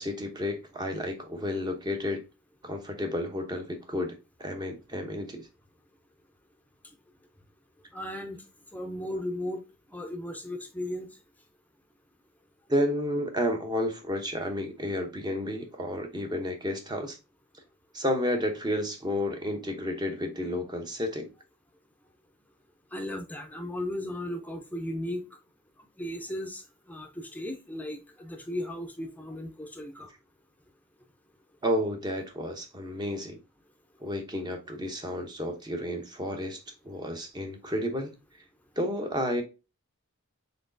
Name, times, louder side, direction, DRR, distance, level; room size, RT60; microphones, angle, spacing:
voice 1, 0.0-2.2 2.6-5.5 12.7-17.2 17.9-21.3 31.6-33.3 34.0-38.1 38.8-39.4, left 1 dB, 20° right, 0.8 m, -31 dB
voice 2, 7.9-8.4 8.7-9.6 9.9-11.1 22.9-25.2 26.0-26.6 26.9-30.1, left 1 dB, 5° left, 0.6 m, -36 dB
4.3 x 3.8 x 2.6 m
head